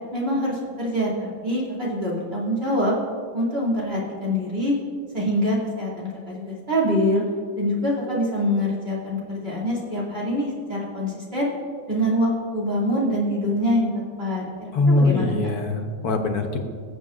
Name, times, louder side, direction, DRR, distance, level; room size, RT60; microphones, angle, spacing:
voice 1, 0.1-3.0 3.3-4.8 5.1-7.2 7.6-11.5 11.9-13.9 14.2-14.4 14.9-15.3, equal, 40° right, -5 dB, 2.8 m, -24 dB
voice 2, 14.7-16.6, left 2 dB, 85° left, 4 dB, 1.5 m, -21 dB
21.0 x 7.5 x 2.5 m, 2.1 s
omnidirectional pair, 1.6 m